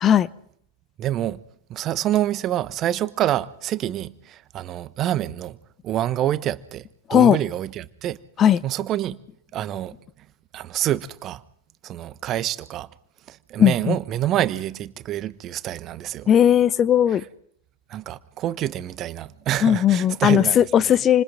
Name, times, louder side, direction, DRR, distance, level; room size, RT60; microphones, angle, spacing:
voice 1, 1.0-1.4 1.7-5.6 5.8-8.2 8.6-9.2 9.5-10.3 10.5-11.4 11.8-12.9 13.3-16.3 17.9-21.0, right 12 dB, 35° right, 1.2 m, -27 dB
voice 2, 13.6-14.0 16.3-17.2 19.6-21.2, left 10 dB, 30° left, 0.9 m, -17 dB
29.0 x 27.0 x 3.9 m
figure-of-eight pair, 90°, 0 cm